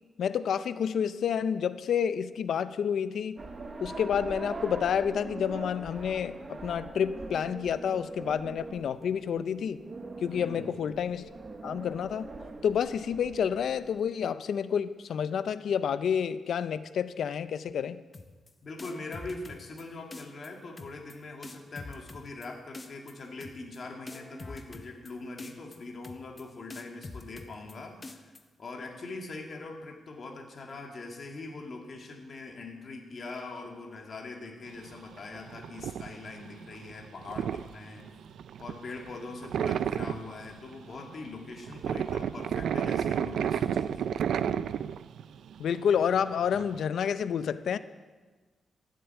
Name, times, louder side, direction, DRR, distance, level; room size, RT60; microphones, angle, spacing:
voice 1, 0.2-3.4 3.8-9.8 10.2-11.3 11.6-12.3 12.6-18.0 45.6-47.8, left 8 dB, 70° left, 14 dB, 0.5 m, -29 dB
Wind Heulen Wind howling, 3.4-14.0, right 3 dB, 25° right, 0.9 m, -42 dB
voice 2, 10.3-10.8 18.6-28.3 28.6-38.1 38.6-44.1, left 3 dB, 40° left, 1 dB, 2.2 m, -42 dB
sound 1, 18.1-18.5 18.8-19.8 20.1-20.5 20.8-21.1 21.4-22.5 22.7-23.1 23.4-23.8 24.1-25.1 25.4-25.8 26.0-26.4 26.7-27.7 28.0-28.4, left 3 dB, 20° left, 0.8 m, -44 dB
sound 2, 34.7-46.8, right 8 dB, 85° right, 0.4 m, -32 dB
13.5 x 7.6 x 8.1 m, 1.3 s
wide cardioid pair, 155°, 0 cm